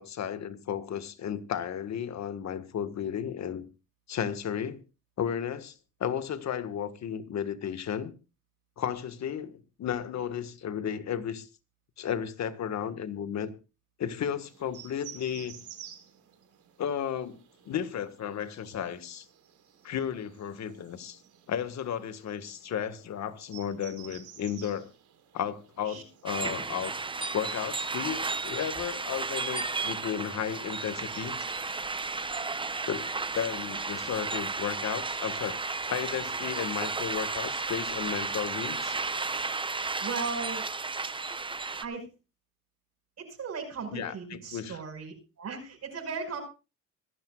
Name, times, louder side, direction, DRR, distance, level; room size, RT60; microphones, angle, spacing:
voice 1, 0.0-3.6 4.1-4.8 5.2-5.7 6.0-8.1 8.8-11.5 12.0-13.5 14.0-15.6 16.8-17.4 17.6-19.2 19.8-21.2 21.5-24.9 25.3-26.9 27.3-31.4 32.9-33.1 33.3-35.6 35.9-39.0 43.9-44.8, left 8 dB, 65° left, 1.5 m, -33 dB
sound 1, 14.4-31.4, right 10 dB, 75° right, 4.1 m, -54 dB
sound 2, 26.3-41.9, right 3 dB, 15° right, 0.7 m, -33 dB
voice 2, 40.0-40.7 41.8-42.1 43.2-46.4, right 5 dB, 60° right, 5.6 m, -37 dB
25.0 x 11.0 x 2.3 m
cardioid pair, 90°, 30 cm